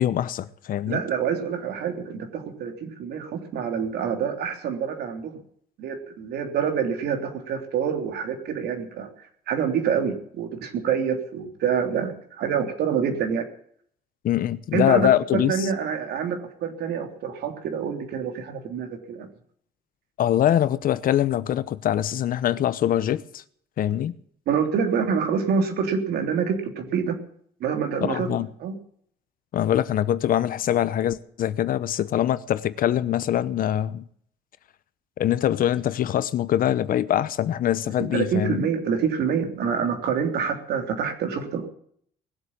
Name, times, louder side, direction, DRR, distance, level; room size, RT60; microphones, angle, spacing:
voice 1, 0.0-1.0 14.2-15.7 20.2-23.4 23.8-24.1 28.0-28.5 29.5-34.0 35.2-38.7, left 11 dB, 55° left, 0.9 m, -23 dB
voice 2, 0.9-5.4 5.8-9.1 9.5-13.5 14.7-19.3 24.5-27.2 27.6-28.7 38.0-41.7, right 7 dB, 70° right, 3.3 m, -26 dB
19.5 x 8.0 x 8.8 m
cardioid pair, 110°, 17 cm